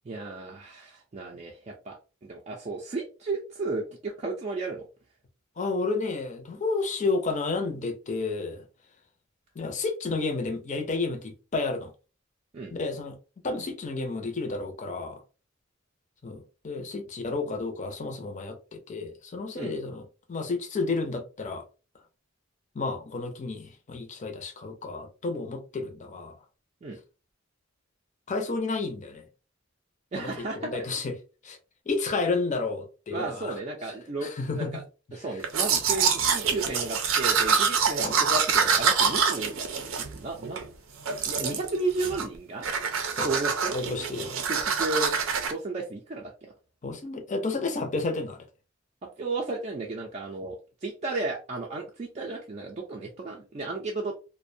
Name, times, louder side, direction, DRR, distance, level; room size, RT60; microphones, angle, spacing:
voice 1, 0.1-4.9 12.5-12.7 19.5-19.7 26.8-27.0 30.1-30.8 33.1-34.3 34.6-34.8 35.1-39.6 40.0-40.6 41.3-42.7 43.2-43.8 44.5-45.1 45.4-46.5 49.2-54.2, right 3 dB, 35° right, 0.4 m, -33 dB
voice 2, 5.6-8.6 9.6-11.9 12.7-13.2 13.4-15.2 16.2-21.6 22.7-26.3 28.3-29.3 30.2-31.2 31.4-31.6 31.9-33.6 34.2-34.8 35.1-35.2 38.0-38.2 43.1-43.3 43.7-44.4 46.8-48.4, left 3 dB, 40° left, 0.5 m, -31 dB
Domestic sounds home sounds, 35.4-40.7 41.1-41.7 42.0-42.4 42.6-45.5, right 6 dB, 90° right, 0.5 m, -26 dB
2.4 x 2.1 x 2.6 m
head